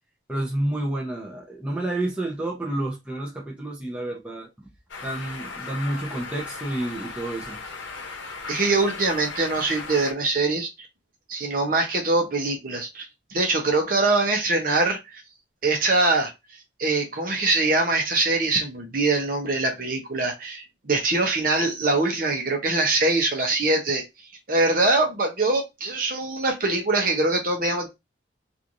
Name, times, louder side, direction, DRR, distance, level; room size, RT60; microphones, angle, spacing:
voice 1, 0.3-4.7 5.0-7.6, right 1 dB, 5° right, 0.7 m, -30 dB
sound 1, 4.9-10.1, left 4 dB, 85° left, 0.8 m, -37 dB
voice 2, 8.5-10.7 11.3-15.2 15.6-16.3 16.8-24.0 24.5-27.9, right 2 dB, 45° right, 0.8 m, -23 dB
3.1 x 2.6 x 2.5 m
head